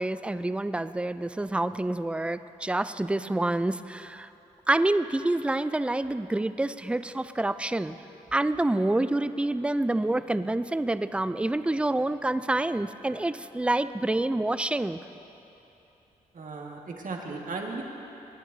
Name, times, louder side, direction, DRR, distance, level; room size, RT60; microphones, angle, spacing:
voice 1, 0.0-4.3 4.7-8.0 8.3-15.0, right 2 dB, 5° right, 13 dB, 0.4 m, -27 dB
voice 2, 16.3-17.8, right 3 dB, 50° right, 0 dB, 1.8 m, -36 dB
24.0 x 10.0 x 2.8 m, 3.0 s
hypercardioid pair, 40°, 17 cm